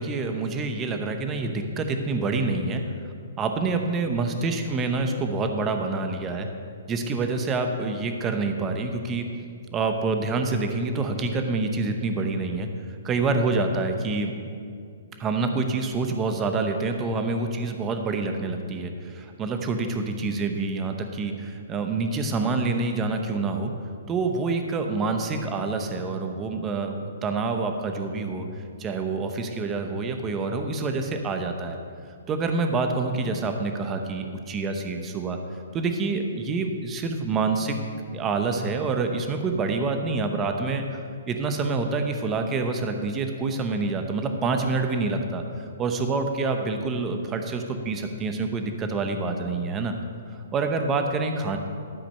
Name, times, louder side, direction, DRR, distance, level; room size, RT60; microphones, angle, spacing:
voice 1, 0.0-2.8 3.4-6.5 6.9-9.3 9.7-12.7 13.0-14.3 15.2-23.7 24.1-31.8 32.3-35.4 35.7-37.8 38.1-49.9 50.3-51.6, right 3 dB, 20° right, 5 dB, 0.9 m, -27 dB
12.0 x 5.0 x 6.5 m, 2.3 s
hypercardioid pair, 150°, 0 cm